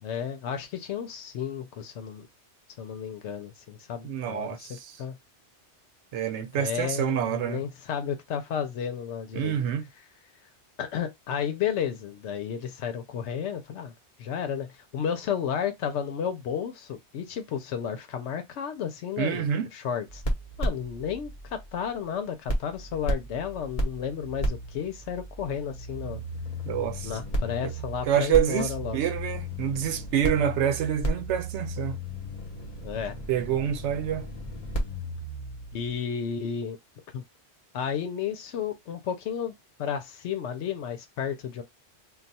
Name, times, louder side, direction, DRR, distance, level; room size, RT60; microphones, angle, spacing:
voice 1, 0.0-2.3 2.8-5.2 6.6-9.6 10.8-13.9 14.2-20.2 20.6-26.2 27.0-29.0 32.8-33.2 35.7-36.8 37.1-37.2 37.7-39.5 39.8-41.6, left 8 dB, 90° left, 0.9 m, -32 dB
voice 2, 4.0-5.0 6.1-7.6 9.3-9.8 19.2-19.7 26.6-27.1 27.6-27.7 28.1-32.0 33.3-34.3, right 9 dB, 80° right, 0.9 m, -27 dB
sound 1, 20.1-22.1 22.5-35.9, equal, 35° left, 0.9 m, -34 dB
2.3 x 2.3 x 4.0 m
omnidirectional pair, 1.2 m